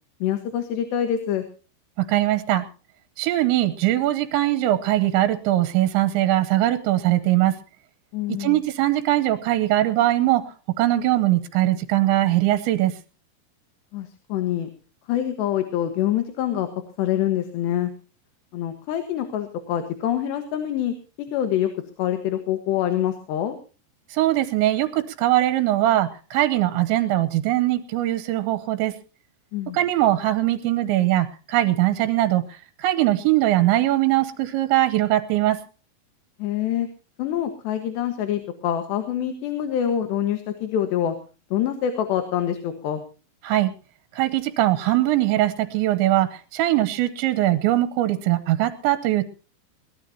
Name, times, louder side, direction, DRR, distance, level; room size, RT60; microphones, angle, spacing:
voice 1, 0.2-1.5 8.1-8.6 13.9-14.7 15.1-16.7 17.0-17.9 18.5-21.7 22.0-23.6 29.5-29.8 36.4-36.9 37.2-41.2 41.5-43.0, left 10 dB, 70° left, 8 dB, 3.5 m, -25 dB
voice 2, 2.0-2.7 3.2-7.6 8.4-10.4 10.8-12.9 24.1-28.9 29.7-35.6 43.4-43.7 44.1-49.2, right 15 dB, 85° right, 13 dB, 3.2 m, -21 dB
22.0 x 18.0 x 2.8 m, 0.35 s
omnidirectional pair, 5.2 m